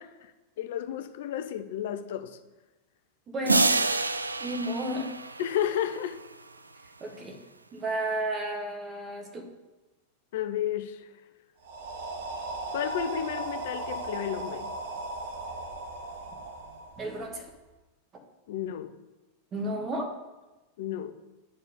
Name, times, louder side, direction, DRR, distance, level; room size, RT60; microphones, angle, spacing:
voice 1, 0.6-2.4 5.4-6.2 10.3-11.1 12.7-14.7 18.5-19.0 20.8-21.1, left 10 dB, 55° left, 0.6 m, -32 dB
voice 2, 3.3-3.7 4.4-5.1 7.0-7.4 7.7-9.5 17.0-17.5 19.5-20.1, right 1 dB, 25° right, 1.7 m, -32 dB
sound 1, 3.5-6.0, right 3 dB, 80° right, 0.3 m, -27 dB
sound 2, 11.6-17.5, right 2 dB, 55° right, 1.0 m, -37 dB
9.9 x 4.5 x 5.3 m
figure-of-eight pair, 90°, 0 cm